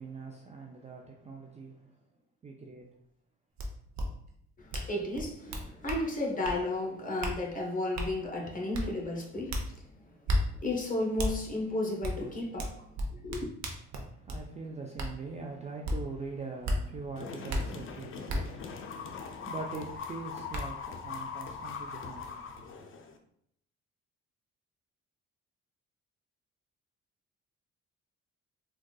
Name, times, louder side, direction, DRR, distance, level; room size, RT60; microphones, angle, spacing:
voice 1, 0.0-2.1 2.4-2.9 13.9-22.7, right 4 dB, 25° right, 0.4 m, -43 dB
sound 1, 3.6-3.7 3.9-4.1 4.7-4.9 5.1-6.0 6.4-6.6 7.2-7.4 8.0-8.1 8.7-8.9 9.5-9.6 10.3-10.4 11.2-11.3 12.0-12.2 12.6-14.4 15.0-15.1 15.8-16.0 16.6-16.8 17.5-17.6 18.3-18.4 19.9-20.0 20.5-20.6, equal, 65° right, 0.7 m, -31 dB
voice 2, 4.6-9.9 10.6-13.5, left 2 dB, 25° left, 0.9 m, -33 dB
sound 2, 17.2-23.2, left 5 dB, 45° left, 0.5 m, -41 dB
3.7 x 2.3 x 2.3 m
cardioid pair, 90°, 30 cm